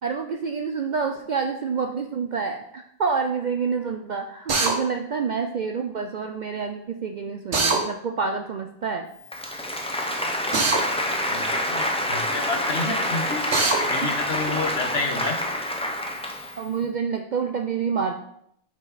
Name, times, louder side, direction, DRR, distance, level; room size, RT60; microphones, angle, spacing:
voice 1, 0.0-9.1 14.0-14.1 14.5-14.6 16.6-18.2, right 5 dB, 55° right, 4 dB, 0.5 m, -28 dB
Drill, 4.5-4.7 7.5-7.8 10.5-10.8 13.5-13.8, right 3 dB, 75° right, 1.5 m, -21 dB
Applause, 9.2-16.7, left 1 dB, 5° left, 0.5 m, -27 dB
voice 2, 11.2-13.4 13.8-15.4, left 3 dB, 60° left, 3 dB, 1.3 m, -30 dB
6.6 x 4.9 x 4.1 m, 0.73 s
omnidirectional pair, 1.2 m